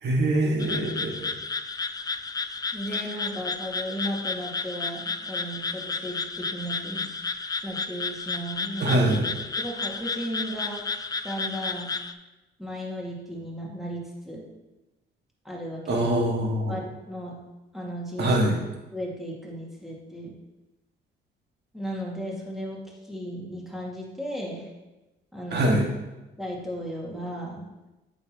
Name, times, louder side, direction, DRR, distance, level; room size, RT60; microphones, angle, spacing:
voice 1, 0.0-1.3 8.8-9.3 15.9-16.8 18.2-18.6 25.5-25.9, right 1 dB, 60° right, -1 dB, 1.9 m, -23 dB
sound 1, 0.6-12.1, left 4 dB, 20° left, 0.4 m, -32 dB
voice 2, 2.7-7.2 7.6-9.0 9.6-10.8 11.2-11.9 12.6-14.4 15.4-16.1 16.7-17.4 17.7-18.4 18.9-20.3 21.7-22.8 23.1-24.7 25.3-25.7 26.4-27.7, equal, ahead, -4 dB, 2.1 m, -35 dB
8.5 x 6.3 x 3.0 m, 1.1 s
cardioid pair, 90°, 20 cm